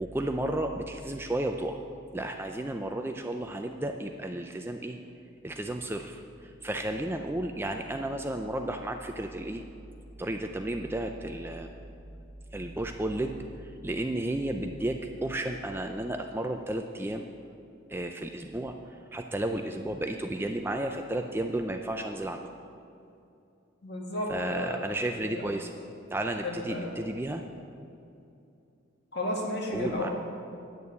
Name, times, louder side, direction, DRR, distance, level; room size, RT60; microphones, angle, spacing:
voice 1, 0.0-1.8 2.1-5.0 5.4-9.6 10.2-11.7 12.5-17.2 17.9-18.8 19.1-22.5 24.3-25.7 26.1-27.4 29.7-30.1, right 1 dB, 10° right, 4 dB, 0.4 m, -33 dB
voice 2, 23.8-25.5 26.4-27.1 29.1-30.1, left 1 dB, 50° left, -1 dB, 2.0 m, -33 dB
10.5 x 7.0 x 8.3 m, 2.7 s
head